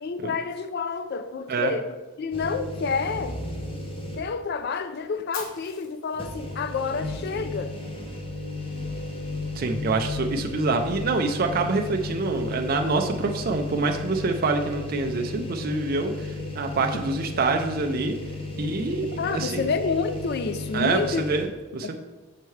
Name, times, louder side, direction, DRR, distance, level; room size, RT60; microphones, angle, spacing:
voice 1, 0.0-1.9 2.2-3.4 4.2-7.8 19.2-21.2 21.8-22.0, left 5 dB, 45° left, 0.3 m, -29 dB
sound 1, 2.3-4.5 4.9-5.0 6.1-21.5, left 2 dB, 25° left, 0.7 m, -34 dB
Fire, 5.3-7.4, left 4 dB, 70° left, 1.1 m, -43 dB
voice 2, 9.6-18.2 18.6-19.7 20.7-22.0, right 3 dB, 40° right, 0.4 m, -26 dB
6.6 x 4.5 x 3.2 m
head